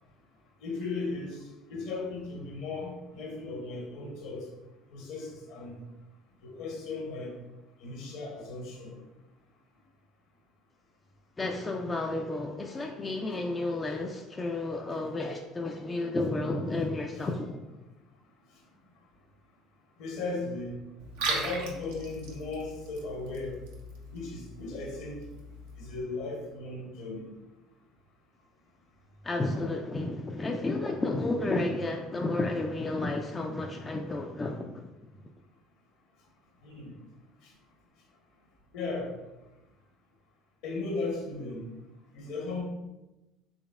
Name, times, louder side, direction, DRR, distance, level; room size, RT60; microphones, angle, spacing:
voice 1, 0.6-1.4 1.7-4.5 4.9-5.8 6.4-7.4 7.8-8.9 20.0-20.8 21.2-23.6 24.1-25.2 25.8-27.3 36.6-36.9 38.7-39.1 40.6-41.6 42.1-42.6, left 3 dB, 65° left, 0 dB, 1.0 m, -36 dB
voice 2, 11.4-17.6 29.2-34.9, left 2 dB, 25° left, 2 dB, 0.4 m, -32 dB
Liquid, 21.0-26.0, right 3 dB, 80° right, 0.7 m, -38 dB
3.9 x 3.4 x 2.3 m, 1.0 s
hypercardioid pair, 65°, 0 cm